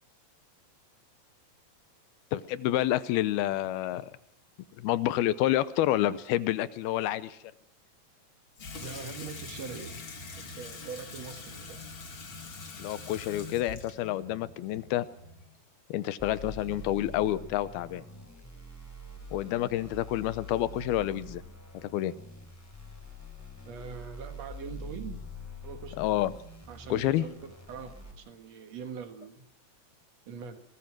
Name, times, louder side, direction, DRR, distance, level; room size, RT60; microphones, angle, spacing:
voice 1, 2.3-4.1 4.8-7.4 12.8-15.1 15.9-18.0 19.3-21.4 21.8-22.1 26.0-26.3 26.9-27.2, left 13 dB, 75° left, 16 dB, 2.6 m, -28 dB
Water tap faucet / Sink (filling or washing), 8.6-15.6, left 3 dB, 35° left, 2.5 m, -44 dB
voice 2, 8.8-10.0 10.4-11.9 23.7-25.2 25.6-26.0 26.7-29.4 30.3-30.6, right 6 dB, 50° right, 8 dB, 2.3 m, -42 dB
sound 1, 16.2-28.1, left 1 dB, 5° left, 3.5 m, -45 dB
23.0 x 19.0 x 6.1 m, 0.78 s
omnidirectional pair, 4.7 m